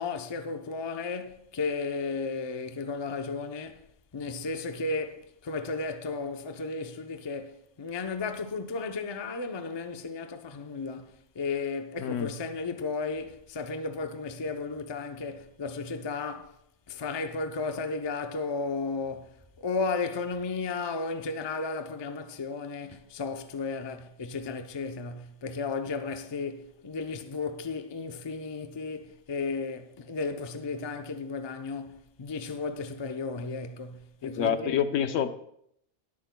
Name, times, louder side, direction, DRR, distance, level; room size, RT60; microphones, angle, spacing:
voice 1, 0.0-3.8 4.1-16.5 16.9-34.8, left 4 dB, 30° left, 0.5 m, -34 dB
voice 2, 34.2-35.4, left 8 dB, 75° left, 1.0 m, -27 dB
20.0 x 8.6 x 2.2 m
omnidirectional pair, 1.3 m